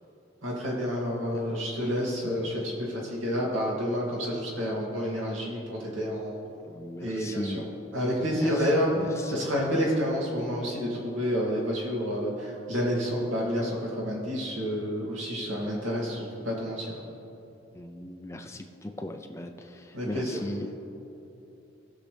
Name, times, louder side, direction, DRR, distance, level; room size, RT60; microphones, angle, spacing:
voice 1, 0.4-6.4 7.0-7.6 7.9-17.0 19.9-20.4, equal, 85° right, -4 dB, 2.5 m, -29 dB
voice 2, 6.7-7.6 8.3-8.7 8.9-9.3 17.7-20.8, left 1 dB, 15° left, 4 dB, 0.4 m, -38 dB
19.0 x 6.6 x 3.3 m, 3.0 s
head